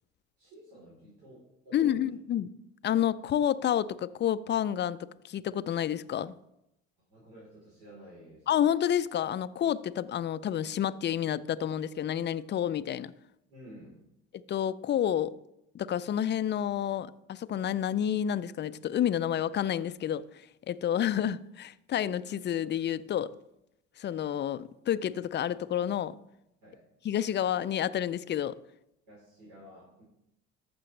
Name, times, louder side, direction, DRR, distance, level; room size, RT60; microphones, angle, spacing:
voice 1, 0.4-2.1 7.1-8.7 13.5-14.0 26.6-26.8 29.1-30.0, equal, 65° right, 3.9 m, -51 dB
voice 2, 1.7-2.5 2.8-6.3 8.5-13.1 14.3-15.3 15.7-20.2 20.7-23.3 24.0-26.2 27.0-28.5, left 10 dB, 30° left, 0.4 m, -29 dB
14.0 x 6.0 x 3.3 m
hypercardioid pair, 65°, 36 cm